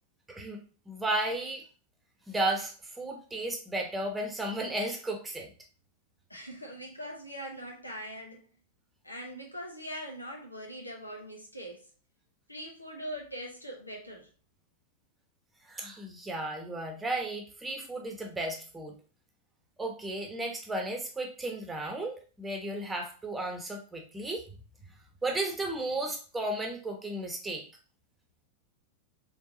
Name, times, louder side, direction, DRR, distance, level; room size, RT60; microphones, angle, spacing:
voice 1, 0.3-0.6 0.9-1.6 2.3-5.5 15.6-19.0 19.8-24.4 25.2-27.6, right 1 dB, 10° right, 1.0 m, -34 dB
voice 2, 6.3-8.5 9.0-11.9 12.5-14.3, equal, 85° left, 1.0 m, -42 dB
4.7 x 3.4 x 2.8 m
figure-of-eight pair, 90°, 0 cm